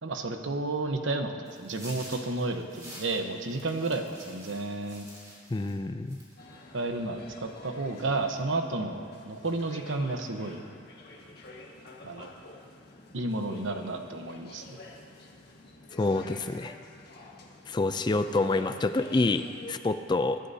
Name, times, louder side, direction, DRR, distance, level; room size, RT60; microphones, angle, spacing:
voice 1, 0.0-5.1 6.7-10.6 12.0-12.3 13.1-14.8, right 2 dB, 80° right, 5 dB, 1.0 m, -32 dB
sound 1, 1.5-5.8 6.1-6.5, equal, 20° right, 3.1 m, -48 dB
voice 2, 5.5-6.2 16.0-16.7 17.7-20.4, left 2 dB, 25° left, 10 dB, 0.4 m, -27 dB
sound 2, 6.4-19.8, left 2 dB, 55° left, 1.5 m, -48 dB
23.0 x 11.5 x 2.8 m, 2.2 s
head